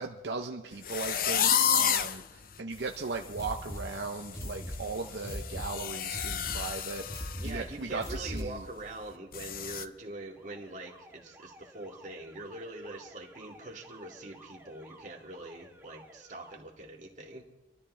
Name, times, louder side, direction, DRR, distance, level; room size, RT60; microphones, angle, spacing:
voice 1, 0.0-8.6, right 4 dB, 75° right, 0.8 m, -38 dB
sound 1, 0.8-2.2 2.8-2.9 3.3-3.5 3.8-7.5 7.8-8.0 8.4-8.5 9.3-9.8, left 8 dB, 50° left, 0.6 m, -30 dB
sound 2, 3.3-8.7, equal, 15° left, 1.2 m, -40 dB
voice 2, 7.4-17.5, right 2 dB, 45° right, 2.3 m, -43 dB
Alarm, 10.1-16.6, right 2 dB, 10° right, 1.5 m, -55 dB
26.5 x 13.0 x 3.3 m
head